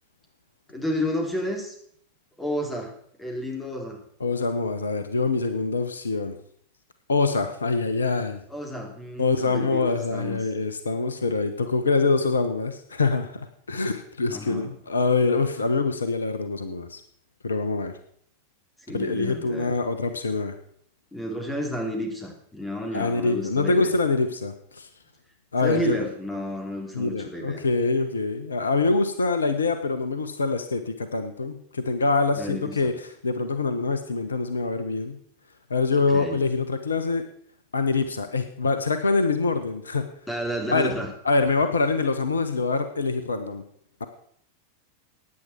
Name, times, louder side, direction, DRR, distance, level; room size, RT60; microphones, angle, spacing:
voice 1, 0.7-1.8 2.4-2.9 3.2-4.0 8.5-10.4 14.3-14.7 18.9-19.7 21.1-24.0 25.6-27.6 32.4-33.0 36.1-36.4 40.3-41.1, equal, 10° left, 2 dB, 3.5 m, -31 dB
voice 2, 4.2-6.4 7.1-8.4 9.2-13.4 13.7-17.0 17.4-17.9 18.9-20.5 22.9-24.9 25.5-26.0 26.9-32.9 33.2-35.2 35.7-37.2 37.7-40.1 40.7-40.9 41.2-43.6 44.0-44.1, left 3 dB, 75° left, 9 dB, 1.1 m, -25 dB
16.5 x 9.9 x 4.5 m, 0.64 s
figure-of-eight pair, 90°, 0 cm